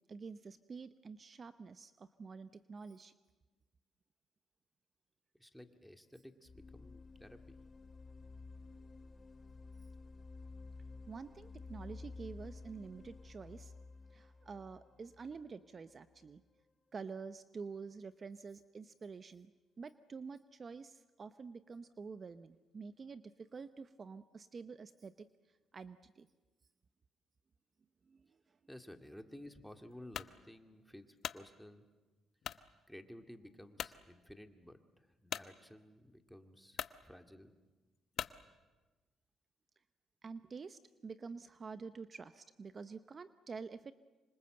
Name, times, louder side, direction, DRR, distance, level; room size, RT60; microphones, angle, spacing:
voice 1, 0.1-3.1 11.1-13.8 14.1-16.4 16.9-19.5 19.8-26.3 28.0-28.6 40.2-43.9, right 5 dB, 40° right, 12 dB, 0.8 m, -48 dB
voice 2, 5.3-7.6 28.7-31.9 32.9-37.5, left 1 dB, ahead, 6 dB, 2.2 m, -54 dB
sound 1, 6.4-16.2, left 3 dB, 30° left, 0.9 m, -52 dB
sound 2, 30.1-30.4 30.9-31.4 32.4-32.7 33.2-33.3 33.8-34.0 35.3-35.5 36.3-36.4 36.7-37.0 38.1-38.4, left 8 dB, 65° left, 0.8 m, -41 dB
26.5 x 25.0 x 7.8 m, 1.2 s
cardioid pair, 90°, 0 cm